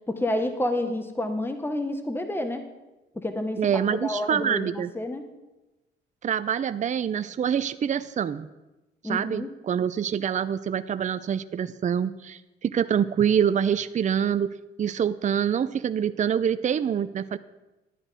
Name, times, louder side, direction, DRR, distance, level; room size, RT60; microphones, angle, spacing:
voice 1, 0.1-2.6 3.1-3.6 3.9-5.2 9.0-9.5, left 1 dB, 10° left, 7 dB, 1.2 m, -29 dB
voice 2, 3.6-4.9 6.2-8.5 9.0-14.5 14.8-17.4, right 8 dB, 40° right, 12 dB, 0.5 m, -25 dB
11.5 x 9.7 x 5.0 m, 1.0 s
cardioid pair, 90°, 20 cm